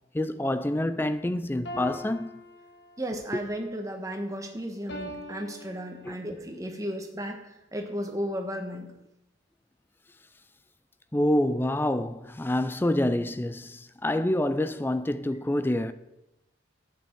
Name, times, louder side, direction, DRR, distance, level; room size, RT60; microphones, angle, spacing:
voice 1, 0.1-2.4 3.3-3.4 6.0-6.2 11.1-15.9, left 1 dB, 10° left, 0.3 m, -27 dB
sound 1, 1.7-3.2 4.9-6.4, equal, 70° left, 1.6 m, -42 dB
voice 2, 3.0-8.9, equal, 15° right, 1.3 m, -34 dB
11.0 x 8.8 x 4.5 m
head